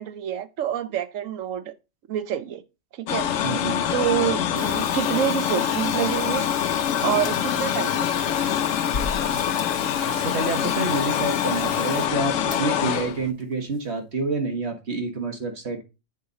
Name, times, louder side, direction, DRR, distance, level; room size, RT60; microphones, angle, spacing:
voice 1, 0.0-1.7 2.1-2.6 2.9-3.3 3.9-6.5 7.0-8.2, right 10 dB, 85° right, 1.1 m, -27 dB
sound 1, 3.1-13.3, left 10 dB, 90° left, 1.0 m, -25 dB
voice 2, 3.4-3.9 10.1-15.8, right 3 dB, 55° right, 1.7 m, -28 dB
Water tap faucet / Sink (filling or washing), 4.5-12.1, right 4 dB, 35° right, 0.5 m, -41 dB
sound 2, 7.2-8.2 8.9-9.8 12.5-13.1 13.4-13.5 13.7-13.8, left 4 dB, 60° left, 1.1 m, -35 dB
8.1 x 4.8 x 3.9 m
omnidirectional pair, 1.3 m